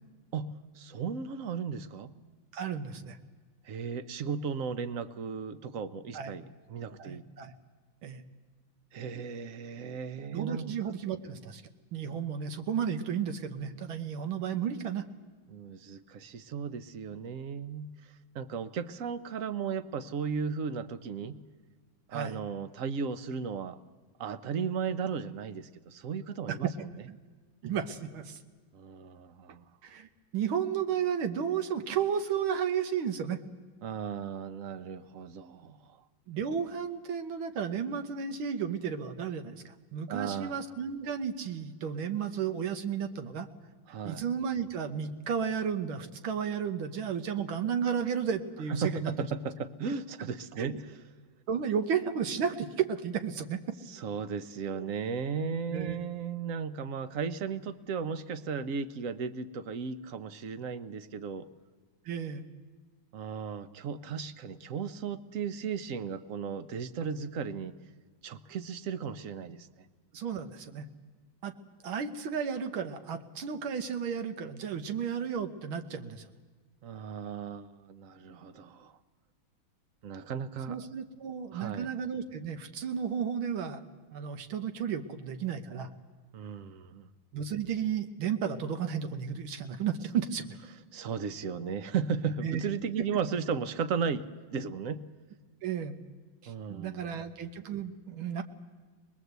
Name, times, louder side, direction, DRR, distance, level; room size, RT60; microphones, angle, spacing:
voice 1, 0.3-2.1 3.6-7.2 8.9-10.7 15.5-21.4 22.1-23.8 24.2-27.0 28.7-29.6 33.8-36.0 40.1-40.6 43.9-44.2 48.7-51.1 53.9-61.5 63.1-67.7 68.2-69.9 76.8-79.0 80.0-80.9 81.5-81.9 86.3-87.1 90.9-95.0 96.5-97.2, right 6 dB, 55° right, 12 dB, 1.0 m, -35 dB
voice 2, 2.5-3.2 6.1-6.4 7.0-7.5 8.0-8.2 10.3-11.6 11.9-15.1 22.1-22.4 26.5-26.7 27.6-28.4 29.8-30.1 30.3-33.4 36.3-43.5 44.0-49.1 50.6-50.7 51.5-53.6 54.7-54.9 55.7-56.0 62.1-62.5 70.1-70.9 71.4-71.5 71.8-76.3 80.7-83.8 84.1-85.9 87.3-90.5 92.4-92.6 95.6-96.0 96.4-98.4, right 7 dB, 90° right, 8 dB, 1.9 m, -33 dB
24.5 x 21.0 x 8.1 m, 1.4 s
omnidirectional pair, 2.2 m